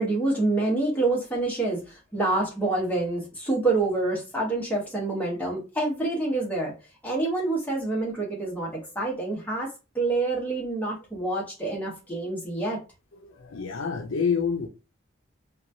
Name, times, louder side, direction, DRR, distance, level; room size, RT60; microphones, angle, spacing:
voice 1, 0.0-6.7 7.0-9.7 9.9-12.8, right 2 dB, 10° left, 1.0 m, -27 dB
voice 2, 13.5-14.7, left 6 dB, 80° left, 0.5 m, -26 dB
2.9 x 2.3 x 2.6 m
head